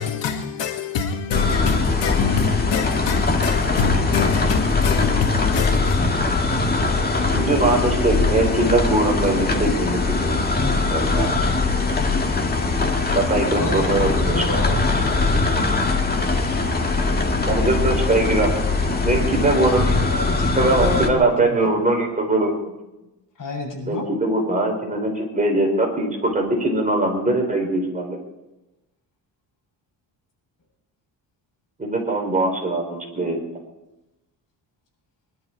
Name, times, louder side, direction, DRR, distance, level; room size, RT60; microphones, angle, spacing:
voice 1, 0.0-6.0, left 6 dB, 80° left, 1.9 m, -25 dB
sound 1, 1.3-21.1, left 3 dB, 20° left, 2.0 m, -21 dB
voice 2, 7.3-10.5 10.9-11.5 13.1-14.6 17.5-18.5 19.0-20.0 20.5-22.7 23.8-28.2 31.8-33.4, right 2 dB, 20° right, 4.6 m, -21 dB
voice 3, 13.4-15.5 20.1-21.6 23.4-24.1 32.9-33.0, left 2 dB, 45° left, 7.7 m, -30 dB
23.0 x 12.5 x 4.7 m
cardioid pair, 130°, 43 cm